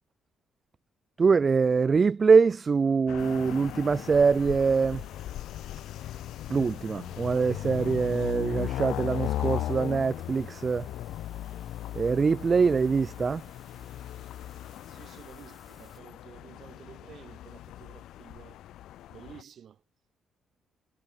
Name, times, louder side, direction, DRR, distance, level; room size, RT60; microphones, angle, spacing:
voice 1, 1.2-5.0 6.5-10.9 12.0-13.4, right 5 dB, 35° right, 0.3 m, -24 dB
sound 1, 3.1-19.4, left 13 dB, 80° left, 1.2 m, -37 dB
sound 2, 3.2-16.0, right 1 dB, 10° right, 4.6 m, -58 dB
voice 2, 14.8-18.6 19.1-19.8, right 8 dB, 60° right, 5.5 m, -51 dB
cardioid pair, 90°, 0 cm